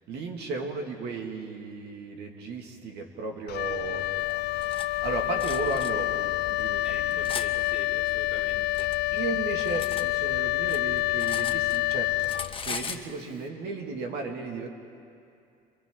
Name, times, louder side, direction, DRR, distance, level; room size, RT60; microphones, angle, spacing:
voice 1, 0.1-4.1 4.5-4.7 5.0-7.6 9.1-12.2 12.6-14.7, right 3 dB, 80° right, 2 dB, 2.0 m, -35 dB
Wind instrument woodwind instrument, 3.5-13.0, left 18 dB, 75° left, 0.5 m, -28 dB
Cutlery silverware, 4.3-4.9 5.4-5.9 6.6-7.5 8.4-10.1 10.4-11.9 12.2-13.1, left 6 dB, 30° left, 1.3 m, -38 dB
voice 2, 6.8-8.9, equal, 5° right, -2 dB, 3.1 m, -45 dB
30.0 x 25.0 x 3.7 m, 2.5 s
cardioid pair, 110°, 17 cm